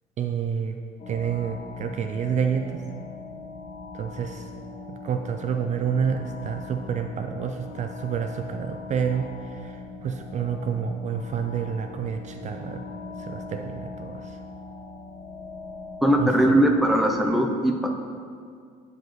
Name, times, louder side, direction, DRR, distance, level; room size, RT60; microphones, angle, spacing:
voice 1, 0.2-0.8 1.1-2.8 3.9-4.5 5.0-12.8 13.2-14.4 16.2-16.3, right 7 dB, 45° right, 6 dB, 0.4 m, -29 dB
sound 1, 1.0-17.3, left 3 dB, 80° left, 1.2 m, -40 dB
voice 2, 16.0-17.9, right 1 dB, ahead, 2 dB, 0.6 m, -20 dB
9.5 x 4.7 x 3.1 m, 2.1 s
cardioid pair, 110°, 17 cm